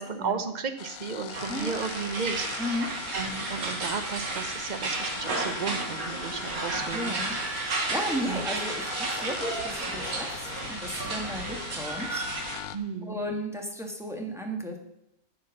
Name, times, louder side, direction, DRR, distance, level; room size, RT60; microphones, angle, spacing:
voice 1, 0.0-7.2 8.3-8.5 12.7-13.2, right 5 dB, 35° right, 9 dB, 0.9 m, -34 dB
sound 1, 0.8-12.8, left 11 dB, 80° left, 1.0 m, -42 dB
sound 2, 1.3-12.6, right 2 dB, 85° right, 2.1 m, -33 dB
voice 2, 1.5-1.8 2.6-2.9 6.9-7.3 7.6-12.2 13.0-14.8, equal, ahead, 2 dB, 1.6 m, -34 dB
10.0 x 7.1 x 6.4 m, 0.82 s
omnidirectional pair, 1.5 m